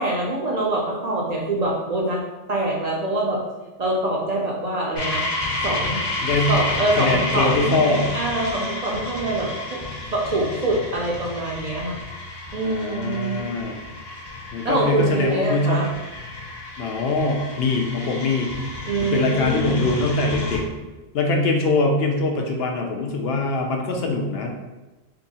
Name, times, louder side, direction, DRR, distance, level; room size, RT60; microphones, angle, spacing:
voice 1, 0.0-2.2 2.5-3.4 3.8-5.2 5.6-6.0 6.5-9.8 10.1-12.0 12.5-13.5 14.6-15.9 18.9-19.9, right 2 dB, 50° right, -2 dB, 0.5 m, -24 dB
sound 1, 5.0-20.6, left 2 dB, 30° left, 0.6 m, -31 dB
voice 2, 7.0-8.0 12.6-13.8 14.5-15.9 16.8-18.5 19.1-20.6 21.1-24.5, left 3 dB, 75° left, 2 dB, 0.8 m, -23 dB
2.7 x 2.6 x 4.0 m, 1.1 s
omnidirectional pair, 1.0 m